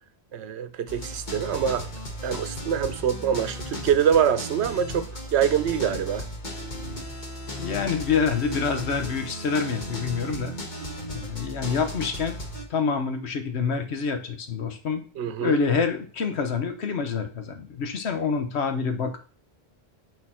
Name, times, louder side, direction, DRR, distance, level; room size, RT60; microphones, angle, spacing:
voice 1, 0.3-1.9 2.2-6.3 15.2-15.5, right 8 dB, 85° right, 0.9 m, -25 dB
sound 1, 0.9-12.6, equal, 45° left, 1.4 m, -36 dB
voice 2, 7.6-10.5 11.1-12.4 12.7-15.0 15.4-19.2, left 5 dB, 85° left, 1.2 m, -27 dB
6.5 x 4.2 x 4.3 m
omnidirectional pair, 1.1 m